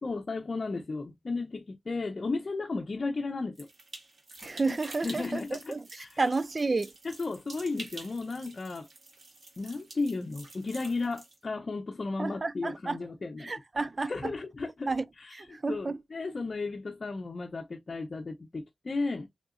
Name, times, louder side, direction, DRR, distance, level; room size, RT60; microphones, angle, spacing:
voice 1, 0.0-3.7 4.7-6.3 7.0-8.9 9.6-13.5 14.1-14.9 15.2-19.3, left 3 dB, 50° left, 0.7 m, -34 dB
sound 1, 3.5-11.4, right 2 dB, 70° right, 1.7 m, -48 dB
voice 2, 4.4-5.8 6.2-6.9 12.2-13.0 13.4-14.3 14.9-15.0 15.3-16.0, right 3 dB, 40° right, 0.4 m, -31 dB
3.9 x 3.5 x 2.5 m
wide cardioid pair, 75°, 0 cm